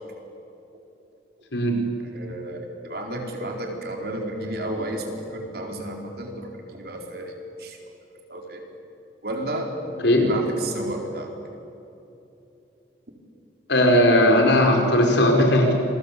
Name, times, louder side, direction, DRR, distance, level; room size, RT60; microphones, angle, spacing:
voice 1, 2.1-7.3 7.6-7.8 8.3-8.6 9.2-9.7 10.2-11.3, right 1 dB, 55° right, 2 dB, 4.2 m, -32 dB
voice 2, 13.7-15.7, left 1 dB, 80° left, 2 dB, 5.2 m, -17 dB
27.5 x 21.5 x 8.5 m, 2.8 s
head